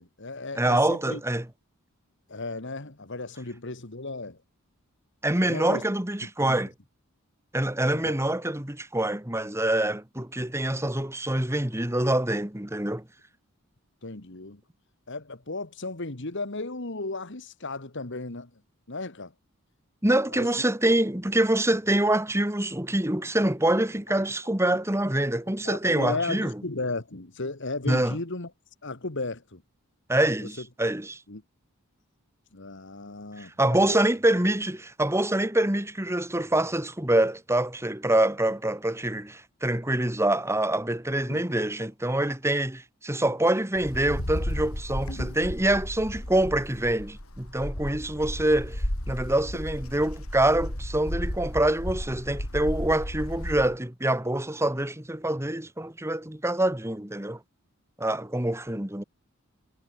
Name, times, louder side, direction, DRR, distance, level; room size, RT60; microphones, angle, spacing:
voice 1, 0.0-1.2 2.3-4.4 5.4-5.8 6.4-6.6 8.0-8.2 14.0-14.6 15.1-18.5 18.9-19.3 20.3-20.5 25.6-28.5 28.8-29.6 30.6-30.7 31.3-31.4 32.5-34.0 41.3-41.4, left 3 dB, 55° left, 1.9 m, -35 dB
voice 2, 0.6-1.5 5.2-6.7 7.5-13.0 20.0-26.6 27.9-28.2 30.1-31.2 33.4-57.4 58.0-59.0, right 1 dB, 10° right, 1.9 m, -25 dB
Wind, 43.8-53.8, equal, 80° left, 5.6 m, -34 dB
head